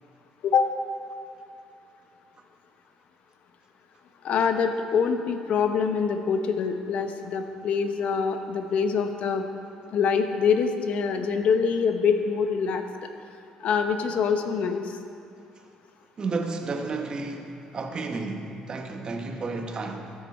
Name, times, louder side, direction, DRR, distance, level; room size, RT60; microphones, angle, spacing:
voice 1, 4.2-9.5 9.9-12.9 13.6-14.9, left 6 dB, 65° left, 7 dB, 0.8 m, -25 dB
voice 2, 16.2-20.1, right 3 dB, 35° right, 4 dB, 1.1 m, -32 dB
13.0 x 7.2 x 4.3 m, 2.5 s
cardioid pair, 105°, 2 cm